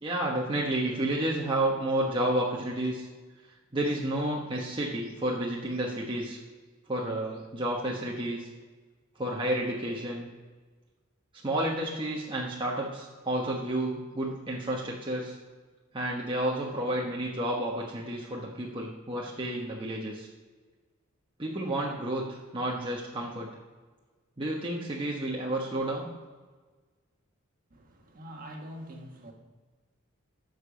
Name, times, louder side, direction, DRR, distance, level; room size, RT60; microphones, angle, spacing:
voice 1, 0.0-3.1 3.7-6.4 6.9-8.5 9.2-10.3 11.4-15.4 15.9-20.3 21.4-23.5 24.4-26.1, right 1 dB, 25° right, 1.1 m, -31 dB
voice 2, 27.7-29.3, equal, 40° right, 1.5 m, -44 dB
10.5 x 6.7 x 5.2 m
head